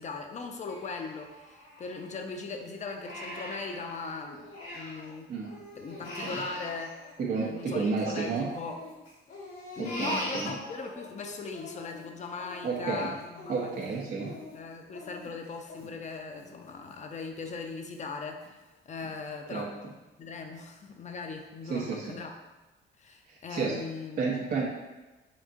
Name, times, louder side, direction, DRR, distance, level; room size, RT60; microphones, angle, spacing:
voice 1, 0.0-5.3 5.8-7.0 7.3-8.8 9.8-13.7 14.5-18.6 18.9-19.8 20.2-22.3 23.0-24.2, left 4 dB, 35° left, 4 dB, 0.5 m, -39 dB
Crying sobbing, 0.7-2.3 2.7-5.1 5.4-7.9 8.3-11.1 11.5-17.0 17.4-17.5 17.9-18.5 19.0-19.1 19.5-19.7, left 1 dB, 85° left, 1.1 m, -42 dB
voice 2, 6.0-6.4 7.2-8.5 9.8-10.5 12.6-13.1 13.5-14.3 19.5-19.9 21.6-22.2 23.3-23.8 24.2-24.7, right 4 dB, 50° right, -3 dB, 0.6 m, -32 dB
3.7 x 3.6 x 2.4 m, 1.1 s
cardioid pair, 90°, 20 cm